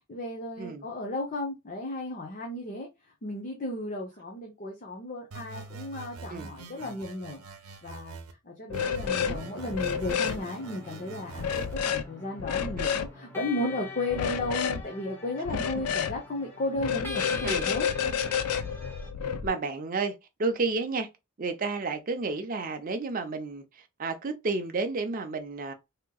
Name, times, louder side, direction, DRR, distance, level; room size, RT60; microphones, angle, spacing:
voice 1, 0.1-2.9 3.2-7.4 7.8-8.2 8.4-17.9, left 1 dB, 35° left, 0.7 m, -34 dB
sound 1, 5.3-8.3 8.7-11.7, right 4 dB, 75° right, 0.8 m, -44 dB
sound 2, 8.7-9.4 9.7-10.4 11.4-12.0 12.4-13.1 14.1-14.8 15.4-16.2 16.8-19.5, left 7 dB, 85° left, 0.4 m, -29 dB
sound 3, 9.0-19.1, left 2 dB, 10° left, 0.9 m, -44 dB
voice 2, 19.4-20.1 20.4-21.1 21.4-25.7, right 3 dB, 40° right, 0.5 m, -31 dB
3.5 x 2.9 x 2.2 m
head